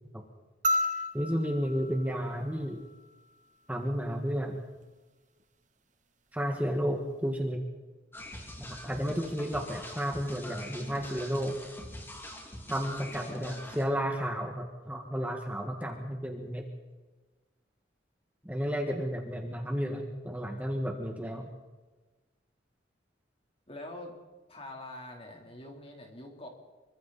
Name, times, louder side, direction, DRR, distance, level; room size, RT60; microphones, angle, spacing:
sound 1, 0.6-3.2 4.8-4.9, left 1 dB, 40° right, 1.4 m, -33 dB
voice 1, 1.1-2.8 3.7-4.6 6.3-7.6 8.6-11.6 12.7-16.7 18.4-21.5, equal, 10° right, 2 dB, 1.8 m, -32 dB
sound 2, 8.1-13.8, left 1 dB, 10° left, 2.8 m, -44 dB
voice 2, 13.0-13.7 23.7-24.1 24.5-26.5, left 1 dB, 30° left, 1 dB, 3.8 m, -45 dB
26.5 x 24.0 x 4.3 m, 1.2 s
head